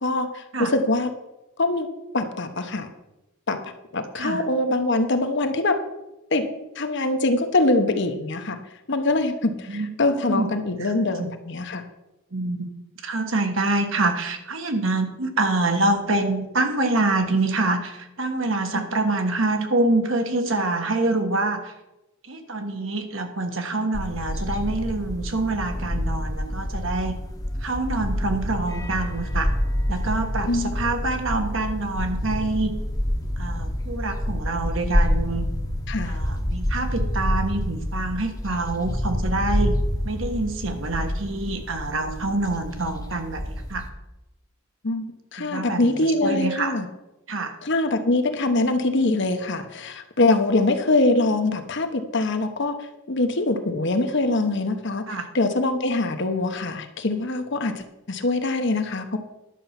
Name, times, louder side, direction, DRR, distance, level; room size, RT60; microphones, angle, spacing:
voice 1, 0.0-1.1 1.6-1.9 2.1-2.9 3.5-5.7 6.3-6.4 6.8-8.6 8.9-11.8 18.7-18.9 30.5-30.7 35.9-36.1 44.8-46.9 47.6-59.2, left 2 dB, 55° left, 7 dB, 1.0 m, -23 dB
voice 2, 9.7-10.5 10.8-11.3 12.3-12.7 13.0-21.7 22.3-27.2 27.6-29.5 29.9-32.7 33.4-35.4 36.0-39.8 40.0-43.8 45.4-46.7 47.3-47.5 55.1-55.2, right 2 dB, 65° right, 6 dB, 1.4 m, -26 dB
sound 1, 23.9-43.9, equal, 15° left, 1.0 m, -27 dB
11.0 x 6.8 x 5.9 m, 0.97 s
head